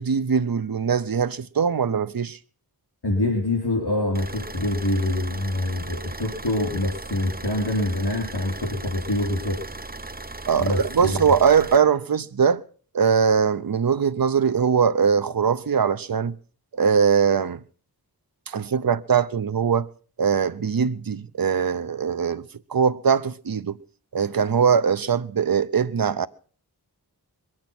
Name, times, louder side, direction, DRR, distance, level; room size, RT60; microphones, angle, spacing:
voice 1, 0.0-2.4 10.5-12.6 12.9-16.3 16.8-17.6 18.5-19.9 20.2-22.4 22.7-23.8 24.1-26.3, right 6 dB, 60° right, 0.7 m, -21 dB
voice 2, 3.0-9.6 10.6-11.2, left 1 dB, 75° left, 4.7 m, -25 dB
sound 1, 4.1-11.8, right 2 dB, 25° right, 0.8 m, -37 dB
22.0 x 8.8 x 6.0 m
wide cardioid pair, 45°, 39 cm